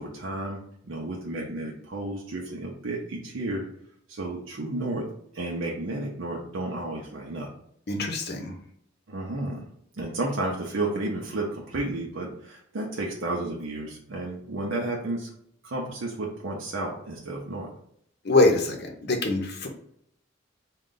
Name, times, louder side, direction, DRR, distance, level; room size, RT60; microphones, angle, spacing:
voice 1, 0.0-3.6 4.1-5.1 5.3-7.5 9.1-9.7 9.9-15.3 15.6-17.7, right 2 dB, 80° right, -2 dB, 0.7 m, -32 dB
voice 2, 7.9-8.6 18.2-19.7, left 2 dB, 55° left, 3 dB, 0.7 m, -24 dB
3.7 x 2.3 x 3.8 m, 0.68 s
head